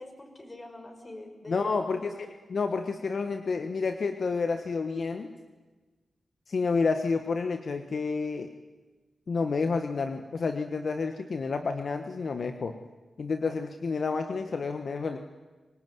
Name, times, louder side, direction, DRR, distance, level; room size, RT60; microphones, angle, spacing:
voice 1, 0.0-2.2, left 2 dB, 30° left, 4 dB, 6.3 m, -45 dB
voice 2, 1.5-5.3 6.5-8.5 9.3-12.7 13.2-15.2, left 4 dB, 65° left, 7 dB, 1.4 m, -30 dB
25.0 x 19.5 x 9.5 m, 1.3 s
cardioid pair, 55°, 0 cm